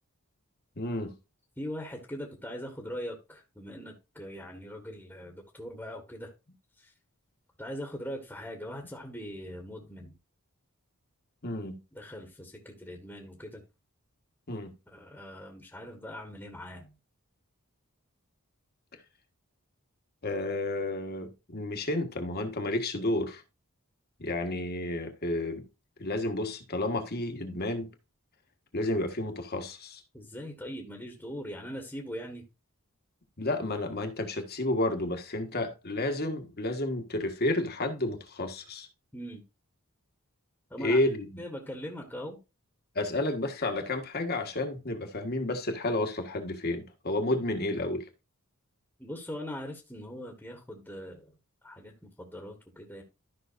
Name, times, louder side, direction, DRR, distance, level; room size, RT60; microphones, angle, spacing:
voice 1, 0.8-1.1 11.4-11.8 14.5-14.7 20.2-23.4 24.2-25.7 26.0-27.9 28.7-30.0 33.4-38.9 40.8-41.4 42.9-48.1, left 1 dB, 45° left, 1.5 m, -31 dB
voice 2, 1.6-6.3 6.8-6.9 7.6-10.2 11.9-13.6 14.9-16.9 30.1-32.4 39.1-39.4 40.7-41.0 41.4-42.4 49.0-51.3 51.6-53.0, equal, 10° left, 1.4 m, -41 dB
13.0 x 5.7 x 2.6 m
head